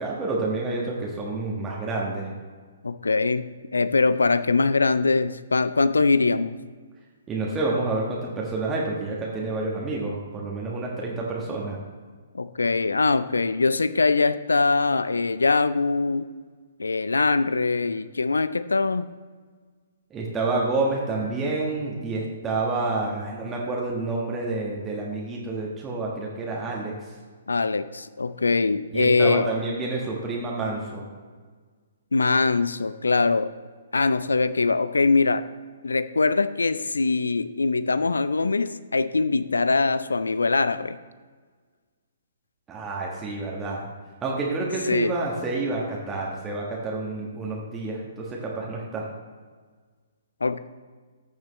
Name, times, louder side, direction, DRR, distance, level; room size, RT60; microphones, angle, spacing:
voice 1, 0.0-2.3 7.3-11.8 20.1-27.1 28.9-31.0 42.7-43.9 44.2-49.1, right 3 dB, 15° right, -3 dB, 1.5 m, -29 dB
voice 2, 2.8-6.6 12.3-16.3 16.8-19.1 27.5-29.5 32.1-33.5 33.9-35.4 35.8-41.0 44.9-45.1 50.4-50.6, left 3 dB, 70° left, 14 dB, 0.5 m, -22 dB
14.0 x 7.2 x 3.1 m, 1.5 s
figure-of-eight pair, 125°, 0 cm